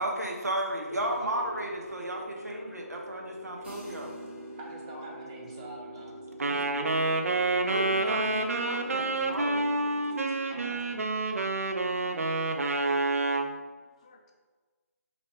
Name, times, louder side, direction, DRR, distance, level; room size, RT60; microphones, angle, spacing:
voice 1, 0.0-4.1 7.6-9.7, right 1 dB, 85° right, 0 dB, 0.9 m, -34 dB
sound 1, 0.9-11.8, left 1 dB, 80° left, 0.7 m, -46 dB
voice 2, 2.2-2.9 5.6-5.8 8.6-8.7 10.1-10.3 11.8-13.0 13.3-14.3, left 3 dB, 25° left, 2 dB, 0.4 m, -57 dB
sound 2, 3.6-13.3, right 3 dB, 45° right, 1.3 m, -50 dB
voice 3, 4.6-6.1 6.5-6.6 10.4-10.8, right 2 dB, 20° right, -1 dB, 0.6 m, -45 dB
Wind instrument woodwind instrument, 6.4-13.5, right 2 dB, 60° right, 0.5 m, -28 dB
5.1 x 3.0 x 3.2 m, 1.4 s
figure-of-eight pair, 160°, 9 cm